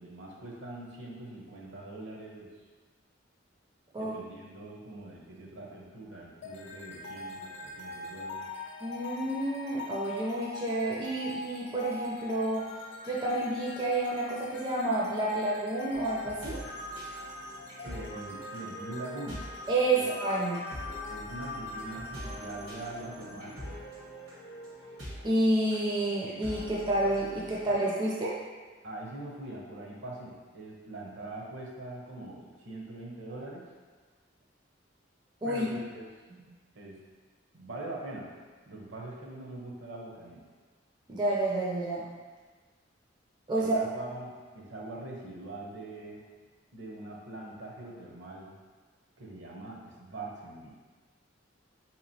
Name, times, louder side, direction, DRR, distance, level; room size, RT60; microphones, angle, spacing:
voice 1, 0.0-2.5 4.0-8.5 17.8-19.5 19.9-20.0 21.1-23.7 28.8-33.7 35.4-36.1 36.7-37.0 37.5-38.3 38.7-40.4 43.5-46.2 46.7-48.6 49.2-50.7, right 2 dB, 70° right, -2 dB, 0.7 m, -43 dB
sound 1, 6.4-23.6, left 3 dB, 60° left, 0.3 m, -43 dB
voice 2, 8.8-12.7 13.0-16.6 19.7-20.6 25.2-28.4 35.4-35.7 41.1-42.1 43.5-43.8, right 2 dB, 25° right, -5 dB, 0.4 m, -29 dB
sound 2, 15.9-27.7, equal, 85° right, 1.1 m, -45 dB
3.6 x 2.9 x 2.7 m, 1.4 s
head